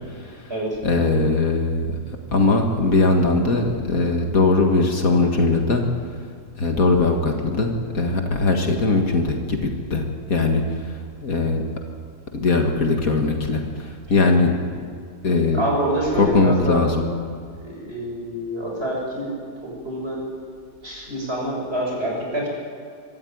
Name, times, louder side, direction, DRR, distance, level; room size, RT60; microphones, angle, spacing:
voice 1, 0.8-1.9 2.3-5.8 6.6-10.6 11.2-11.6 12.3-14.5 15.2-15.6 16.2-17.0, left 3 dB, 60° left, 3 dB, 2.2 m, -20 dB
voice 2, 15.5-16.8 17.6-19.3 19.6-20.2 20.8-22.5, right 1 dB, 40° right, -2 dB, 7.4 m, -26 dB
24.5 x 13.5 x 9.4 m, 2.2 s
omnidirectional pair, 1.7 m